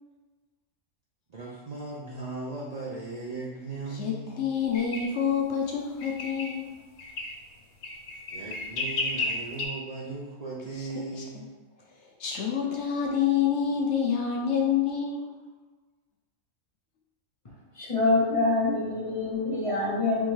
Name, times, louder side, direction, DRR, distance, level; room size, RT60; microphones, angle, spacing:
voice 1, 1.3-4.5 8.3-11.5, right 3 dB, 55° right, -5 dB, 0.4 m, -37 dB
voice 2, 3.9-6.7 10.8-10.9 11.2-11.4 12.2-15.3, left 7 dB, 65° left, 0 dB, 0.8 m, -27 dB
sound 1, 4.7-5.1 6.0-6.6 7.0-7.3 7.8-9.7, left 3 dB, 90° left, 1.1 m, -32 dB
voice 3, 17.7-20.3, left 2 dB, 40° left, -4 dB, 0.5 m, -25 dB
3.5 x 3.1 x 3.1 m, 1.3 s
omnidirectional pair, 1.4 m